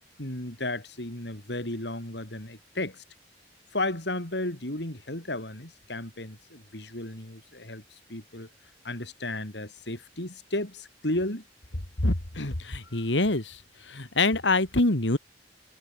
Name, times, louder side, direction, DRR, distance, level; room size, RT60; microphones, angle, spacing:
voice 1, 0.2-3.0 3.7-7.8 8.1-8.5 8.8-11.4 12.9-13.0, left 1 dB, 70° left, 4.6 m, -34 dB
voice 2, 12.0-13.6 13.9-15.2, left 2 dB, 90° left, 2.5 m, -25 dB
head